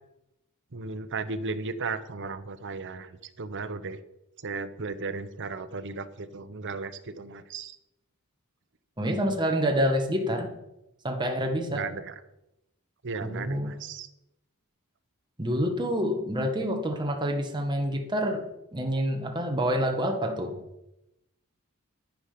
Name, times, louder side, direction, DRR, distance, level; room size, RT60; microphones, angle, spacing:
voice 1, 0.7-4.0 4.4-7.8 11.7-12.2 13.0-14.1, right 4 dB, 55° right, 11 dB, 0.9 m, -35 dB
voice 2, 9.0-10.5 11.0-11.9 13.2-13.7 15.4-20.6, equal, 20° right, 3 dB, 1.7 m, -27 dB
10.0 x 9.9 x 5.2 m, 0.87 s
head